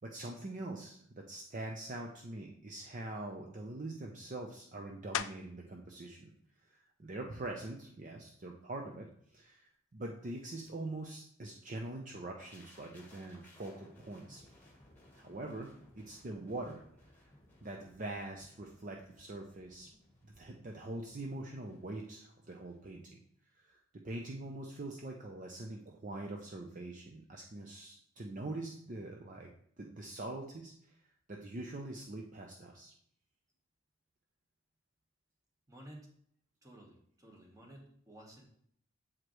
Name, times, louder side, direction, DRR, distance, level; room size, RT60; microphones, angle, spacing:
voice 1, 0.0-6.3 6.7-9.1 9.3-14.4 15.2-16.8 17.6-19.9 20.2-23.2 23.6-23.8 24.0-29.5 29.8-31.0 31.3-32.9, right 2 dB, 40° right, 1 dB, 0.6 m, -43 dB
sound 1, 5.1-5.7 6.3-10.7 11.2-16.4 16.7-22.3, left 9 dB, 80° left, 0.4 m, -49 dB
sound 2, 12.4-22.3 22.6-22.8, left 1 dB, 10° left, 1.4 m, -62 dB
voice 2, 35.7-36.1 36.6-38.4, right 1 dB, 15° right, 0 dB, 1.2 m, -54 dB
7.3 x 4.9 x 3.1 m, 0.65 s
head